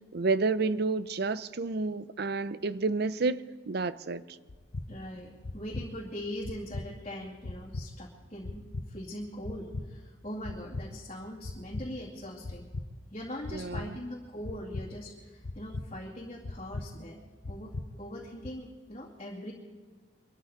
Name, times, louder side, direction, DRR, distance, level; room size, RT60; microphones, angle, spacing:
voice 1, 0.1-4.4 13.5-14.0, right 3 dB, 55° right, 0.6 m, -30 dB
sound 1, 4.5-4.9 5.4-5.9 6.4-6.9 7.4-7.9 8.4-8.9 9.4-9.9 10.4-10.9 11.4-11.9 12.4-12.9 13.4-13.9 14.4-14.9 15.4-15.9 16.4-16.9 17.4-17.9 18.4-18.5, left 2 dB, 65° left, 0.8 m, -37 dB
voice 2, 4.9-12.7 13.1-17.2 17.5-19.5, equal, 30° left, 2.3 m, -41 dB
24.0 x 13.5 x 4.0 m
head